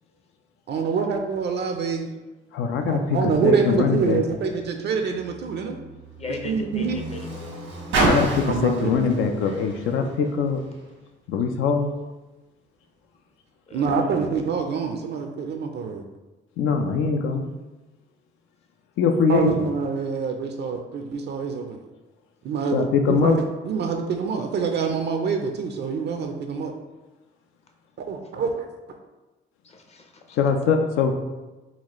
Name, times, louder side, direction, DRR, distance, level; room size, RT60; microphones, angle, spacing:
voice 1, 0.7-2.1 2.9-5.8 6.4-7.0 8.5-9.0 13.7-16.0 19.3-21.8 22.4-23.3 23.6-26.7 28.1-28.7, right 5 dB, 60° right, 4 dB, 0.4 m, -26 dB
voice 2, 2.5-4.2 8.0-10.6 11.3-11.9 16.6-17.5 19.0-19.7 22.7-23.4 30.3-31.1, left 5 dB, 85° left, 4 dB, 0.4 m, -22 dB
Car, 4.3-10.9 11.7-11.8, right 2 dB, 90° right, 1.2 m, -30 dB
voice 3, 6.2-7.4 13.7-14.2 29.6-30.4, left 3 dB, 30° left, 4 dB, 0.5 m, -38 dB
4.1 x 2.3 x 2.9 m, 1.1 s
cardioid pair, 90°, 20 cm